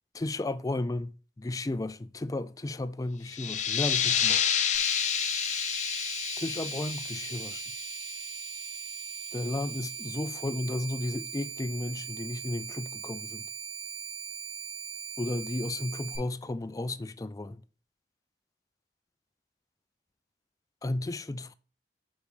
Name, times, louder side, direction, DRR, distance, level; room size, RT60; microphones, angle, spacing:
voice 1, 0.2-4.4 6.4-7.6 9.3-13.5 15.2-17.6 20.8-21.5, left 2 dB, 20° left, 0.4 m, -33 dB
sound 1, 3.3-8.7, left 8 dB, 45° left, 0.7 m, -30 dB
sound 2, 4.7-16.2, right 6 dB, 65° right, 4.5 m, -40 dB
6.2 x 5.1 x 5.1 m
head